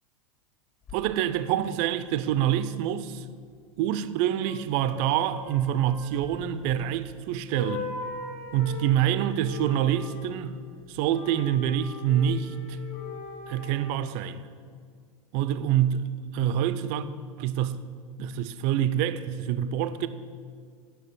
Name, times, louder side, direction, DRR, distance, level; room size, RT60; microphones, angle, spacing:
sound 1, 0.8-0.9 4.4-7.2 7.5-10.4 11.0-14.0, left 4 dB, 35° left, 3.1 m, -40 dB
voice 1, 0.9-3.2 3.8-7.9 8.5-10.6 10.9-12.8 13.5-14.5 15.3-17.1 17.4-17.8 18.2-20.1, right 10 dB, 50° right, 0.6 m, -26 dB
9.1 x 6.3 x 7.4 m
hypercardioid pair, 95°, 18 cm